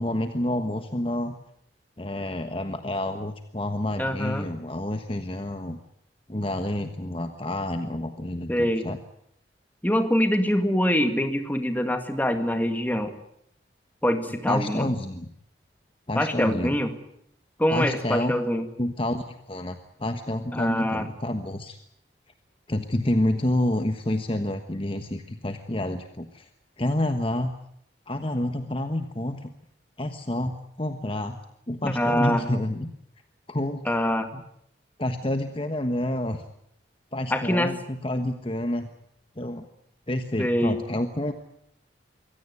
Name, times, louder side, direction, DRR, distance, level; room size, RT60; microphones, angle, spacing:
voice 1, 0.0-1.3 2.0-5.8 6.3-9.0 14.5-15.3 16.1-16.7 17.7-18.3 18.8-21.8 22.7-26.5 26.8-27.5 28.1-29.5 30.0-30.5 30.8-31.4 31.7-32.9 33.5-34.0 34.3-34.4 35.0-36.4 37.1-38.9 39.4-39.6 40.1-41.3, left 1 dB, 30° left, 7 dB, 1.3 m, -28 dB
voice 2, 4.0-4.5 8.5-8.9 9.8-13.1 14.0-14.9 16.2-17.0 17.6-18.7 20.5-21.1 31.8-32.4 33.9-34.3 37.3-37.8 40.4-40.8, equal, 10° left, 7 dB, 2.1 m, -24 dB
24.0 x 17.0 x 9.6 m, 0.72 s
head